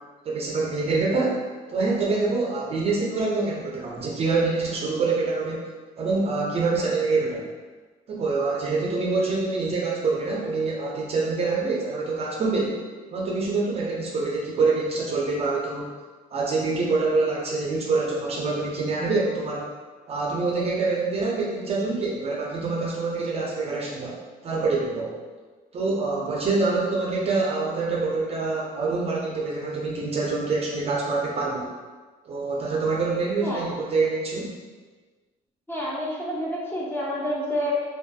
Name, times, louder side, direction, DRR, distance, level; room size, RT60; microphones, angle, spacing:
voice 1, 0.2-1.4 1.7-5.7 6.0-7.5 8.1-12.8 13.1-15.9 16.3-19.7 20.1-24.2 24.4-25.1 25.7-31.7 32.3-34.6, right 3 dB, 35° right, -3 dB, 0.4 m, -25 dB
voice 2, 35.7-37.9, left 1 dB, 15° left, -6 dB, 0.6 m, -28 dB
2.4 x 2.3 x 2.4 m, 1.4 s
cardioid pair, 110°, 17 cm